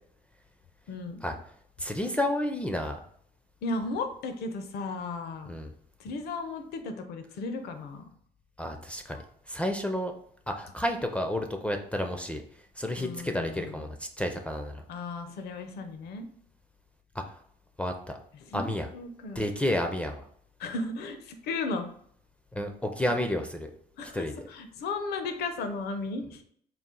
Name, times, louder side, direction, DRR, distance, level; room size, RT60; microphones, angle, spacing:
voice 1, 0.9-1.2 3.6-5.5 6.0-8.0 13.0-13.9 14.9-16.3 18.4-19.5 20.6-21.9 24.0-26.4, left 3 dB, 70° left, 7 dB, 0.6 m, -35 dB
voice 2, 1.8-3.0 5.5-5.7 8.6-9.2 9.5-10.1 10.5-12.4 12.8-14.8 17.2-17.3 17.8-18.2 18.5-18.9 19.4-20.2 22.5-23.7 24.1-24.3, left 1 dB, 5° left, 5 dB, 0.4 m, -31 dB
4.1 x 2.4 x 3.7 m, 0.64 s
cardioid pair, 110°, 17 cm